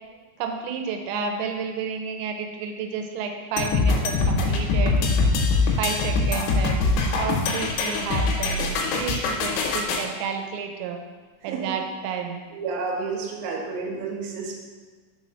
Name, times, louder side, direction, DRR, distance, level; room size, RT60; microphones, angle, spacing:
voice 1, 0.4-5.3 5.8-11.0 11.4-12.4, right 6 dB, 90° right, 4 dB, 3.3 m, -31 dB
sound 1, 3.6-10.1, left 3 dB, 80° left, 3.0 m, -23 dB
voice 2, 12.5-14.6, right 4 dB, 70° right, -2 dB, 2.2 m, -30 dB
6.7 x 4.1 x 6.2 m, 1.4 s
omnidirectional pair, 5.7 m